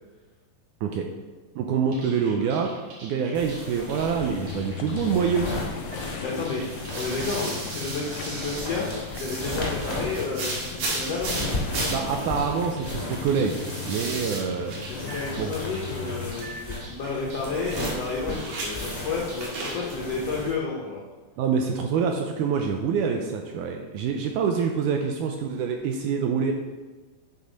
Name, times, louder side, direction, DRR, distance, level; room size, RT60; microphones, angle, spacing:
voice 1, 1.6-2.7 3.0-5.5 6.1-6.2 11.9-13.6 13.9-14.8 15.4-15.5 21.4-26.5, right 6 dB, 80° right, 3 dB, 1.9 m, -26 dB
sound 1, 1.9-19.9, right 2 dB, 60° right, 2.9 m, -37 dB
sound 2, 3.3-20.5, left 1 dB, 15° left, 1.5 m, -36 dB
sound 3, 4.1-16.3, left 8 dB, 90° left, 1.7 m, -38 dB
voice 2, 6.2-6.6 7.0-11.4 14.9-21.0, left 4 dB, 75° left, -3 dB, 1.4 m, -31 dB
8.3 x 4.5 x 5.1 m, 1.3 s
omnidirectional pair, 4.0 m